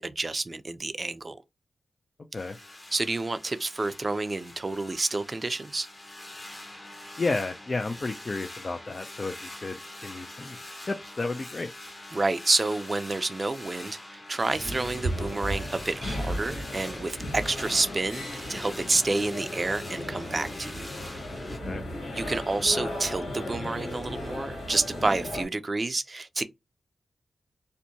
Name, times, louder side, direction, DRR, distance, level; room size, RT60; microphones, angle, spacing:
voice 1, 0.0-1.4 2.9-5.9 12.1-20.9 22.1-26.4, right 3 dB, 40° right, 0.4 m, -29 dB
sound 1, 2.3-21.6, left 1 dB, 30° left, 0.9 m, -44 dB
voice 2, 7.2-10.6 10.9-11.7 21.6-21.8, left 3 dB, 45° left, 0.4 m, -32 dB
sound 2, 14.5-25.5, equal, 90° left, 1.4 m, -35 dB
2.7 x 2.1 x 2.7 m
cardioid pair, 45°, 0 cm